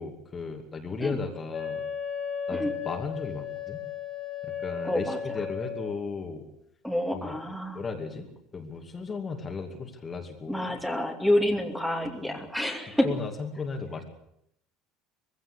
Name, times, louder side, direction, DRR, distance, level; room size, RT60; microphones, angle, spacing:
voice 1, 0.0-1.8 2.5-3.8 4.4-6.4 7.1-7.4 7.7-10.8 12.2-12.4 13.0-14.0, left 4 dB, 25° left, 3 dB, 2.5 m, -35 dB
Wind instrument woodwind instrument, 1.5-6.0, left 7 dB, 40° left, 2.5 m, -35 dB
voice 2, 4.8-5.2 6.8-7.8 10.5-13.1, left 1 dB, ahead, 3 dB, 2.7 m, -28 dB
20.0 x 16.0 x 8.4 m, 0.76 s
supercardioid pair, 125°, 0 cm